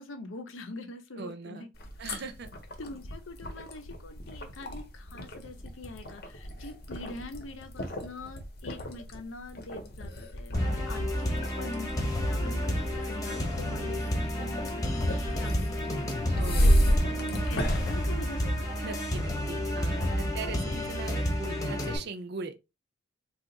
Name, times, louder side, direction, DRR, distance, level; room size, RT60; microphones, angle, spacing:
voice 1, 0.0-1.7 2.1-2.2 2.8-16.1 16.6-18.7, left 2 dB, 85° left, 0.7 m, -44 dB
voice 2, 1.2-1.7 2.0-2.5 16.3-16.8 18.8-22.5, right 4 dB, 60° right, 0.5 m, -40 dB
sound 1, 1.7-18.9, equal, 55° left, 0.8 m, -32 dB
sound 2, 10.5-22.0, equal, 20° left, 0.9 m, -30 dB
2.7 x 2.4 x 3.9 m
head